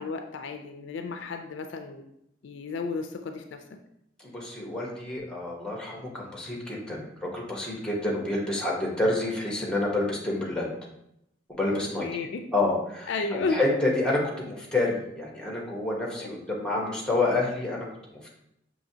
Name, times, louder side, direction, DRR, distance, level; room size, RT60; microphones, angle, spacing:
voice 1, 0.0-2.0 2.4-3.6 11.7-12.4 13.1-13.6 16.2-16.3, left 4 dB, 65° left, 6 dB, 0.4 m, -33 dB
voice 2, 4.2-10.7 11.6-12.1 12.5-17.9, left 2 dB, 5° left, -2 dB, 1.0 m, -28 dB
5.9 x 2.8 x 2.8 m, 0.78 s
head